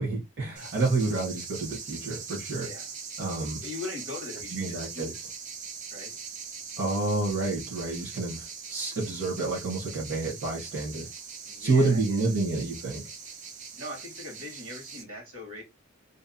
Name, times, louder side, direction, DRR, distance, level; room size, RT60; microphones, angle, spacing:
voice 1, 0.0-2.7 3.2-3.6 4.5-5.1 6.8-8.4 8.7-11.1 11.6-13.0, right 3 dB, 60° right, 1.0 m, -28 dB
sound 1, 0.6-15.0, right 6 dB, 35° right, 0.4 m, -41 dB
voice 2, 3.6-5.2 5.9-6.1 11.5-12.2 13.7-15.6, left 2 dB, 75° right, 1.4 m, -40 dB
2.7 x 2.0 x 2.5 m
head